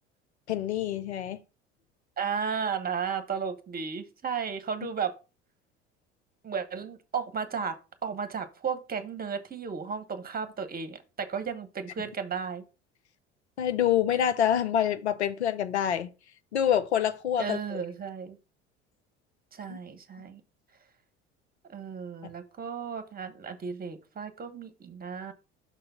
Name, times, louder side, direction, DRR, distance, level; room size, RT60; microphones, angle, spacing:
voice 1, 0.5-1.4 13.6-16.1 16.5-17.8 19.7-19.8, left 9 dB, 85° left, 0.6 m, -26 dB
voice 2, 2.2-5.1 6.4-12.6 17.4-18.4 19.5-20.4 21.7-25.3, right 6 dB, 30° right, 1.2 m, -34 dB
6.2 x 3.8 x 5.5 m
figure-of-eight pair, 65°, 33 cm